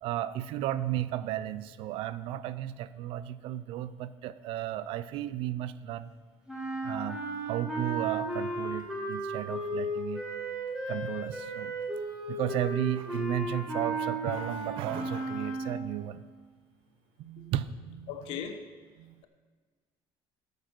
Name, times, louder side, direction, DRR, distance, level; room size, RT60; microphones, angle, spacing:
voice 1, 0.0-6.1 6.8-10.3 10.9-11.7 12.3-16.2 17.2-18.5 19.0-19.2, right 12 dB, 70° right, 16 dB, 0.5 m, -34 dB
sound 1, 6.5-16.0, right 1 dB, 10° right, 2.1 m, -35 dB
voice 2, 18.1-18.6, left 8 dB, 70° left, 7 dB, 1.2 m, -37 dB
13.0 x 6.7 x 6.0 m, 1.4 s
cardioid pair, 175°, 10 cm